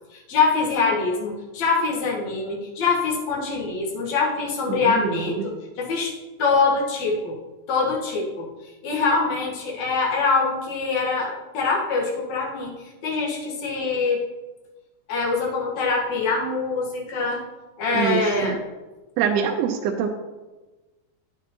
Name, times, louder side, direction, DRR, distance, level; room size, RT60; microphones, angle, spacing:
voice 1, 0.1-6.1 6.4-7.4 7.7-8.5 8.8-12.7 13.0-14.2 15.1-17.4 17.8-18.6, left 4 dB, 60° left, -3 dB, 2.2 m, -24 dB
voice 2, 4.7-5.5 17.9-18.6 19.2-20.1, right 7 dB, 85° right, 3 dB, 2.5 m, -25 dB
9.1 x 7.4 x 2.9 m, 1.1 s
omnidirectional pair, 4.5 m